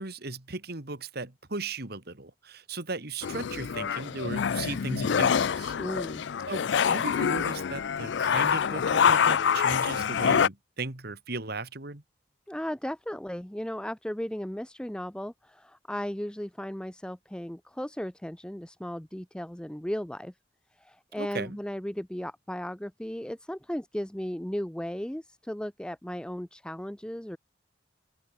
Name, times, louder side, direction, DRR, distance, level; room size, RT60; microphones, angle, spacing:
voice 1, 0.0-5.7 6.5-12.0 21.2-21.6, right 3 dB, 60° right, 2.5 m, -36 dB
sound 1, 3.2-10.5, left 7 dB, 70° left, 0.4 m, -26 dB
voice 2, 5.8-6.3 12.5-20.3 20.7-27.4, equal, 5° left, 0.6 m, -36 dB
head